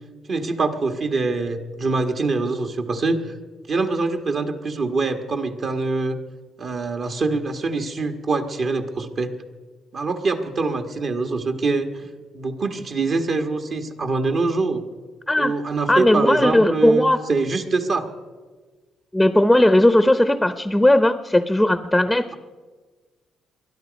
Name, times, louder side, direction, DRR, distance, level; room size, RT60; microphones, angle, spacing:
voice 1, 0.3-3.4 3.7-6.2 6.6-9.3 9.9-12.1 12.3-14.8 15.4-18.1, right 3 dB, 50° right, 6 dB, 1.5 m, -24 dB
voice 2, 15.9-17.2 19.1-22.3, left 1 dB, 5° left, 12 dB, 0.7 m, -17 dB
22.0 x 12.5 x 5.2 m, 1.4 s
cardioid pair, 90°, 0 cm